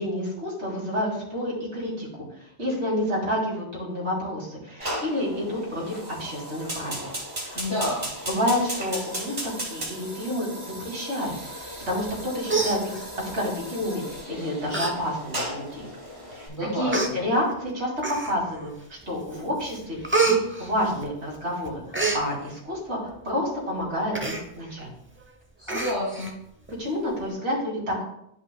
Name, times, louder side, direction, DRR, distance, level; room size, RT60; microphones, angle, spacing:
voice 1, 0.0-2.3 2.6-7.1 7.4-7.6 8.3-10.5 10.8-15.9 16.3-17.9 18.2-24.9 26.8-28.1, left 1 dB, 70° right, -4 dB, 2.7 m, -29 dB
Fire, 4.8-16.5, equal, 35° right, 1.9 m, -36 dB
voice 2, 7.5-8.1 16.5-17.2 25.6-26.3, left 1 dB, 30° left, -8 dB, 2.3 m, -29 dB
Human voice, 12.0-12.2 12.5-13.4 14.1-14.3 14.7-14.9 15.3-15.4 16.2-16.3 16.9-17.1 18.0-18.5 19.0-19.4 19.7-21.4 21.6-22.2 24.1-24.4 24.8-24.9 25.2-25.3 25.7-26.3 26.7-26.8, right 3 dB, 15° right, 0.6 m, -27 dB
11.0 x 5.4 x 2.2 m, 0.75 s
omnidirectional pair, 1.2 m